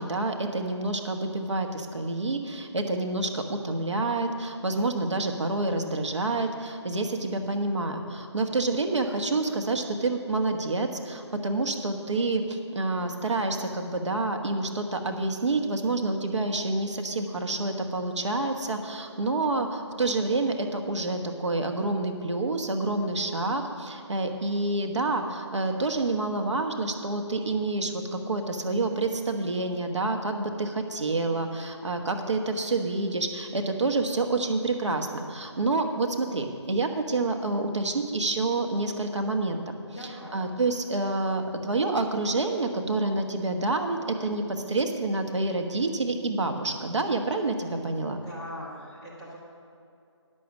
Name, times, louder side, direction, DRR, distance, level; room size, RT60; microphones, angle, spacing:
voice 1, 0.0-39.6 40.0-48.2, right 2 dB, 75° right, 4 dB, 1.2 m, -28 dB
voice 2, 39.9-40.5 48.2-49.4, equal, ahead, -12 dB, 0.8 m, -41 dB
10.5 x 6.4 x 7.1 m, 2.5 s
figure-of-eight pair, 170°, 15 cm